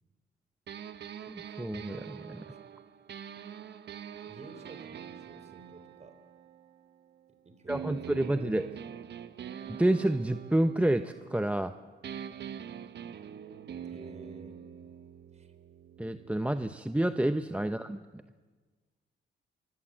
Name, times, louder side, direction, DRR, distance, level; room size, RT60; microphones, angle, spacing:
sound 1, 0.7-7.2 7.7-11.7 12.0-17.8, right 8 dB, 60° right, 1.2 m, -45 dB
voice 1, 1.3-2.4 7.7-8.7 9.7-11.7 16.0-18.2, right 1 dB, 5° right, 9 dB, 0.8 m, -29 dB
voice 2, 4.2-6.2 7.3-8.3 13.8-14.6 15.3-15.5, right 3 dB, 35° right, 9 dB, 4.1 m, -52 dB
24.5 x 23.5 x 7.8 m, 1.4 s
cardioid pair, 90°, 20 cm